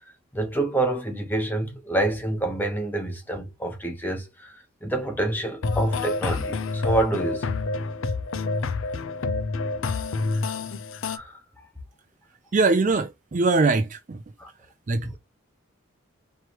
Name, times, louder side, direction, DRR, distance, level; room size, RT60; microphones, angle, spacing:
voice 1, 0.3-7.5 11.0-11.3 14.4-14.5 15.0-15.1, right 2 dB, 10° left, 1.0 m, -27 dB
sound 1, 5.6-11.2, left 3 dB, 75° left, 0.5 m, -28 dB
voice 2, 12.5-14.2 14.9-15.2, right 3 dB, 35° right, 0.4 m, -22 dB
4.6 x 3.2 x 2.9 m
head